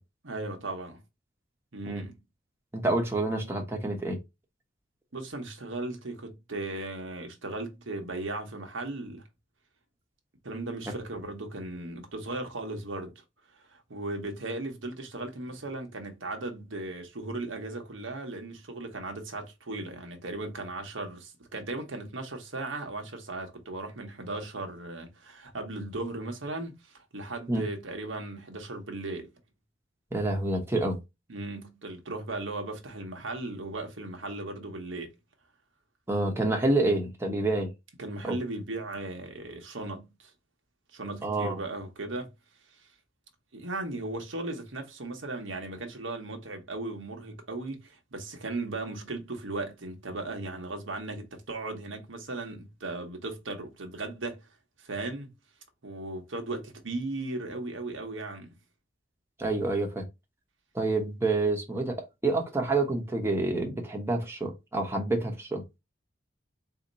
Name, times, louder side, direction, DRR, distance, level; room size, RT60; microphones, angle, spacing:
voice 1, 0.2-1.0 1.7-2.2 5.1-9.3 10.4-13.1 13.7-29.3 31.3-35.1 38.0-40.3 40.9-42.3 43.5-54.5 54.8-55.3 55.8-58.6, right 2 dB, 85° right, 1.2 m, -37 dB
voice 2, 2.7-4.2 27.5-27.6 30.1-31.0 36.1-37.7 38.2-38.4 41.2-41.6 59.4-60.0 60.7-65.6, right 2 dB, 15° right, 1.0 m, -28 dB
4.2 x 2.8 x 4.0 m
head